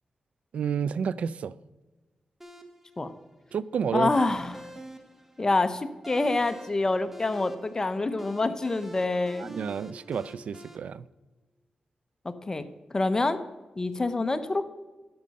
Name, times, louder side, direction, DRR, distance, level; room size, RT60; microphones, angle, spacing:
voice 1, 0.5-1.5 3.5-4.1 9.4-11.0, right 7 dB, 85° right, 0.3 m, -30 dB
sound 1, 2.4-10.8, right 1 dB, 15° right, 1.1 m, -46 dB
voice 2, 3.9-4.7 5.4-9.5 12.2-12.6 12.9-13.4 13.8-14.6, left 2 dB, 30° left, 0.8 m, -26 dB
12.5 x 5.3 x 6.5 m
wide cardioid pair, 90°, 2 cm